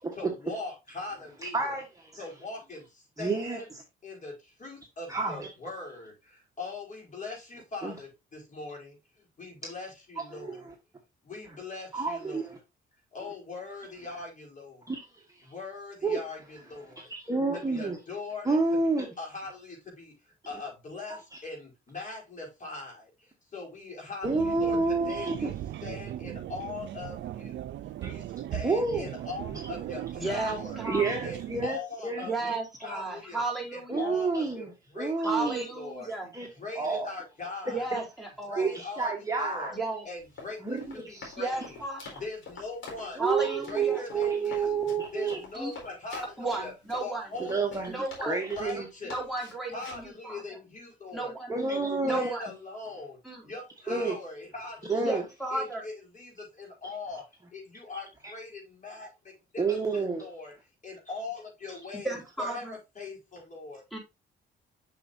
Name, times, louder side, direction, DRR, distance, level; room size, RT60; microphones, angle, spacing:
voice 1, 0.1-1.8 2.2-3.7 4.0-10.7 11.2-12.5 13.1-14.9 15.4-17.1 17.5-18.6 19.2-25.5 25.8-27.6 28.0-30.8 31.2-33.4 33.7-35.5 35.8-37.9 38.4-39.8 40.0-41.8 42.1-43.2 43.6-44.8 45.1-46.7 47.0-47.9 48.2-49.2 49.7-51.3 51.7-51.8 52.1-53.2 53.4-55.2 55.5-59.6 59.9-60.5 60.8-63.8, left 3 dB, 40° left, 5.1 m, -41 dB
voice 2, 1.4-2.1 3.2-3.6 5.1-5.5 7.8-7.9 9.6-9.7 10.4-10.5 11.9-12.6 14.9-15.0 16.0-16.2 17.1-18.0 18.4-19.1 24.2-25.5 28.0-28.1 28.6-29.1 30.8-32.3 33.9-34.7 35.0-35.6 36.3-36.5 36.7-37.1 37.9-38.0 38.6-39.7 40.6-41.3 43.2-45.4 47.4-47.9 48.2-48.9 51.5-52.3 53.9-54.1 54.9-55.2 59.6-60.2, right 4 dB, 15° right, 1.5 m, -29 dB
sound 1, 24.2-31.7, right 12 dB, 65° right, 0.5 m, -38 dB
voice 3, 30.1-31.2 32.2-34.1 35.2-36.3 37.7-38.7 39.7-40.1 41.4-42.2 43.2-44.0 45.5-45.7 46.4-47.3 47.9-48.3 49.0-50.4 51.1-51.5 52.0-52.4 53.2-53.4 55.0-55.8 62.0-62.7 63.9-64.0, right 2 dB, ahead, 4.3 m, -34 dB
Run, 40.2-48.8 49.1-50.1, left 4 dB, 75° left, 4.2 m, -46 dB
7.6 x 6.3 x 2.7 m
cardioid pair, 90°, 20 cm